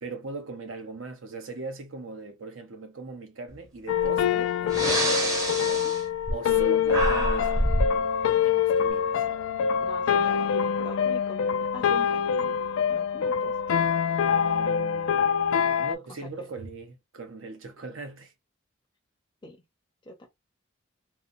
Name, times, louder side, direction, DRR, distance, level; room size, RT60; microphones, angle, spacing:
voice 1, 0.0-6.0 6.3-7.6 8.4-9.2 14.2-18.3, right 3 dB, 75° right, 0.8 m, -39 dB
sound 1, 3.9-16.0, left 7 dB, 75° left, 0.3 m, -25 dB
Breathing, 4.0-4.2 4.6-6.6 6.9-8.0, right 1 dB, 15° right, 0.7 m, -27 dB
voice 2, 9.8-12.6 12.9-13.8 19.4-19.6 20.0-20.3, left 2 dB, 20° left, 0.5 m, -42 dB
2.9 x 2.0 x 2.5 m
head